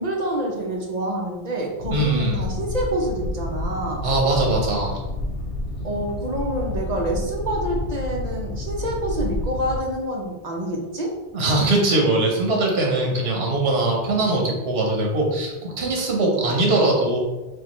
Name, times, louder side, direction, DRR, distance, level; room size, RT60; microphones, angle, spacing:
voice 1, 0.0-4.0 5.8-11.1, right 1 dB, 45° right, -1 dB, 0.9 m, -27 dB
Boat Water vehicle, 1.8-9.8, left 2 dB, 70° left, 0.8 m, -30 dB
voice 2, 1.9-2.4 4.0-5.0 11.3-17.2, right 2 dB, 75° right, 0 dB, 1.1 m, -21 dB
6.5 x 2.5 x 3.0 m, 1.1 s
omnidirectional pair, 1.0 m